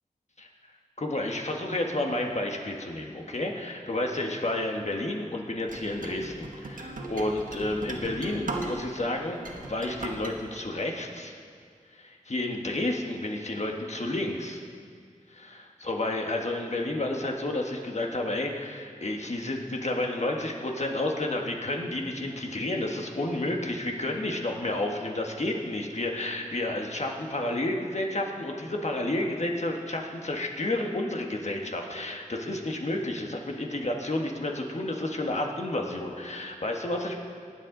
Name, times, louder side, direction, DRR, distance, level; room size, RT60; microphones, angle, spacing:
voice 1, 1.0-11.3 11.9-14.6 15.3-37.2, left 1 dB, 55° left, 1 dB, 1.5 m, -31 dB
sound 1, 5.7-9.0 9.4-10.3, right 2 dB, 80° right, 1.2 m, -37 dB
19.5 x 7.5 x 3.9 m, 2.2 s
wide cardioid pair, 55°, 14 cm